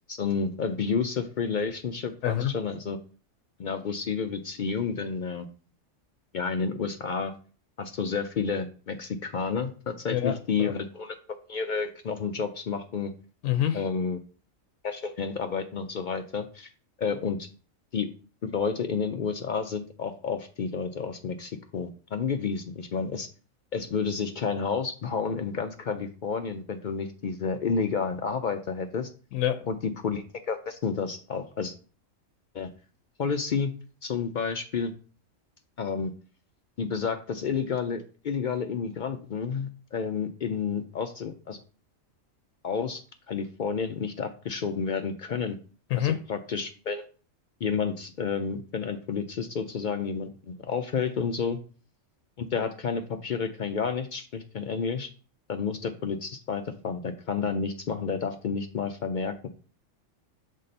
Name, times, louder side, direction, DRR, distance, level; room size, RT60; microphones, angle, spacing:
voice 1, 0.1-3.0 3.6-5.5 6.3-7.3 7.8-11.2 11.5-13.1 13.7-14.2 14.8-16.7 17.0-17.4 17.9-18.1 18.4-23.3 23.7-29.1 29.7-31.7 32.5-32.7 33.2-33.7 34.0-34.9 35.8-36.1 36.8-41.6 42.6-43.0 43.3-45.6 46.0-47.1 47.6-51.6 52.4-55.1 55.5-59.5, left 5 dB, 65° left, 6 dB, 0.4 m, -30 dB
voice 2, 10.1-10.7 13.4-13.8 29.3-29.7 45.9-46.2, left 11 dB, 80° left, 7 dB, 1.0 m, -26 dB
6.5 x 3.6 x 4.1 m, 0.39 s
omnidirectional pair, 1.4 m